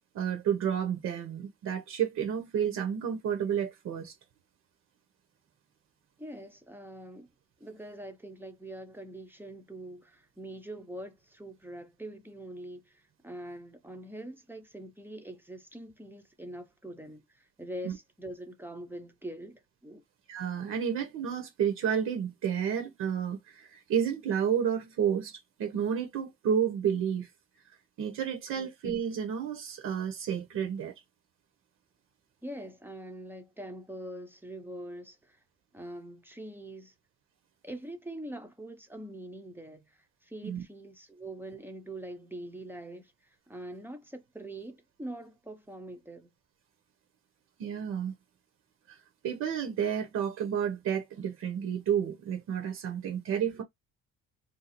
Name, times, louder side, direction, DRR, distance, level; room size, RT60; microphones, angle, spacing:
voice 1, 0.1-4.1 17.8-17.9 20.3-27.3 28.0-30.9 40.4-40.6 47.6-48.1 48.9-49.0 49.2-53.6, right 8 dB, 50° right, 0.9 m, -31 dB
voice 2, 6.2-7.3 7.6-20.0 28.6-28.7 32.4-35.4 35.7-36.9 37.6-46.3 53.3-53.5, right 1 dB, 5° right, 0.6 m, -44 dB
2.8 x 2.3 x 4.1 m
cardioid pair, 125°, 34 cm